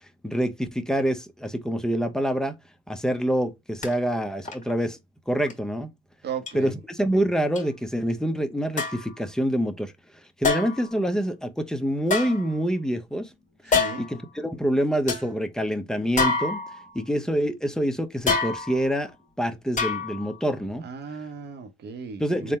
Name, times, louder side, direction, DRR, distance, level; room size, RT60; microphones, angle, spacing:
voice 1, 0.2-2.5 2.9-5.0 5.3-5.9 6.5-9.9 10.4-13.3 13.6-16.6 16.9-19.1 19.4-20.9 22.2-22.6, equal, 5° left, 0.6 m, -26 dB
sound 1, 3.8-3.9 4.4-4.7 5.5-5.6 6.5-6.6 7.6-7.7 8.8-9.1 10.4-10.9 12.0-12.9 13.7-14.2 14.7-14.8 15.1-15.3 16.2-17.0 18.3-18.9 19.8-20.3 20.7-20.8, left 4 dB, 40° left, 1.6 m, -26 dB
voice 2, 6.2-6.8 13.7-14.0 20.8-22.6, right 6 dB, 60° right, 0.8 m, -36 dB
3.7 x 2.1 x 4.2 m
cardioid pair, 90°, 20 cm